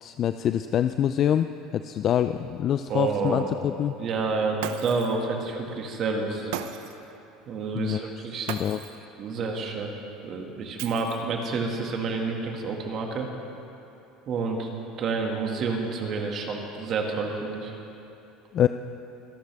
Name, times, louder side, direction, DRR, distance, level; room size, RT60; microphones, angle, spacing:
voice 1, 0.0-3.9 7.7-8.0 8.5-8.8 18.5-18.7, left 10 dB, 45° left, 10 dB, 0.3 m, -25 dB
voice 2, 2.9-3.6 4.0-6.5 7.5-8.5 9.2-9.9 10.2-13.3 14.3-14.7 15.0-17.7, right 4 dB, 50° right, 1 dB, 2.0 m, -29 dB
Shatter, 4.6-5.2 6.5-7.1 8.5-9.1 10.8-11.4, right 10 dB, 80° right, 0.7 m, -36 dB
25.0 x 11.5 x 3.5 m, 2.8 s
supercardioid pair, 115°, 0 cm